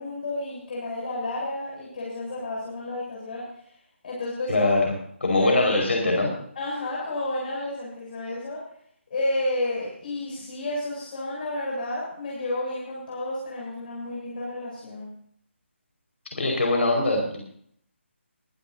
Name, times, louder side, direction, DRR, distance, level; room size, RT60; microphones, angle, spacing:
voice 1, 0.0-3.5 4.0-4.7 5.4-5.7 6.6-8.7 9.1-15.1, left 1 dB, 45° left, -5 dB, 7.4 m, -31 dB
voice 2, 4.5-4.8 5.2-6.3 16.3-17.4, left 2 dB, 70° left, 0 dB, 5.1 m, -22 dB
24.0 x 12.0 x 2.8 m, 0.63 s
figure-of-eight pair, 155°, 7 cm